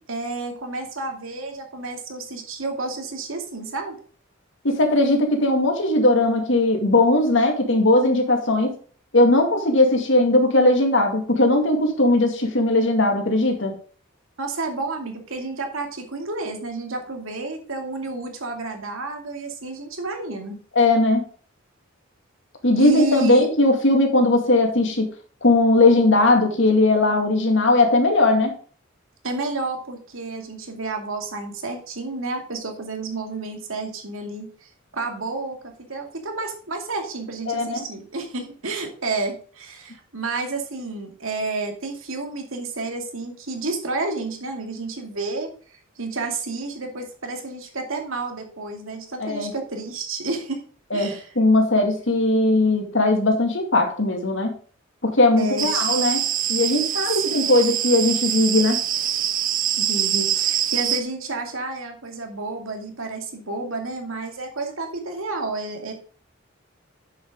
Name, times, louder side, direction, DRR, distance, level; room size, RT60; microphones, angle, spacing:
voice 1, 0.1-4.0 14.4-20.6 22.8-23.5 29.2-45.5 46.0-50.6 50.9-51.3 55.4-55.9 57.1-57.2 59.8-65.9, right 3 dB, 85° right, 3 dB, 2.5 m, -30 dB
voice 2, 4.6-8.7 9.1-13.8 20.8-21.2 22.6-25.1 25.4-28.5 37.5-37.9 49.2-49.5 50.9-54.5 55.0-56.2 56.5-58.8, left 2 dB, 65° left, 3 dB, 2.4 m, -19 dB
sound 1, 55.6-61.0, right 11 dB, 40° right, 0.6 m, -24 dB
9.7 x 7.4 x 3.8 m, 0.42 s
head